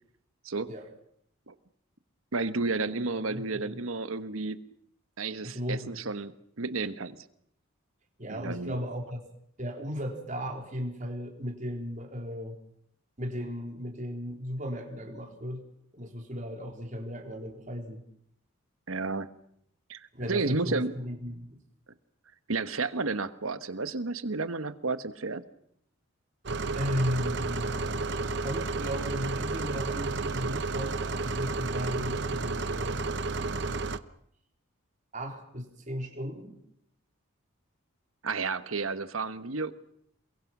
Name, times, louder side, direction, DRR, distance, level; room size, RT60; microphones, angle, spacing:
voice 1, 2.3-4.6 5.2-7.2 8.3-8.8 18.9-19.3 19.9-20.0 20.3-20.9 22.5-25.4 38.2-39.7, right 3 dB, 80° right, 12 dB, 1.3 m, -32 dB
voice 2, 3.1-3.8 5.4-6.1 8.2-9.2 9.6-12.6 13.2-15.6 15.9-18.0 20.1-21.6 26.7-28.0 28.4-33.0 35.1-36.6, equal, 35° right, 2 dB, 3.8 m, -35 dB
sound 1, 26.5-34.0, right 3 dB, 55° right, 0.9 m, -32 dB
28.5 x 22.5 x 6.1 m, 0.71 s
head